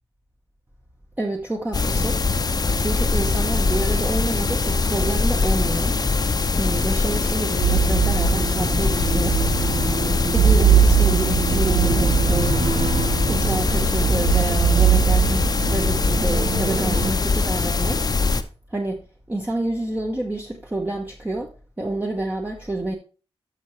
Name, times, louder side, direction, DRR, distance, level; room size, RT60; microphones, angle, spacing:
voice 1, 1.2-2.2 2.8-6.0 6.6-9.4 10.3-12.6 13.3-18.0 18.7-19.0 19.3-23.0, right 2 dB, 15° right, 0.9 m, -28 dB
sound 1, 1.7-18.4, left 4 dB, 40° left, 0.6 m, -22 dB
sound 2, 7.3-17.1, right 8 dB, 75° right, 0.6 m, -21 dB
12.0 x 5.6 x 3.1 m
wide cardioid pair, 100°, 10 cm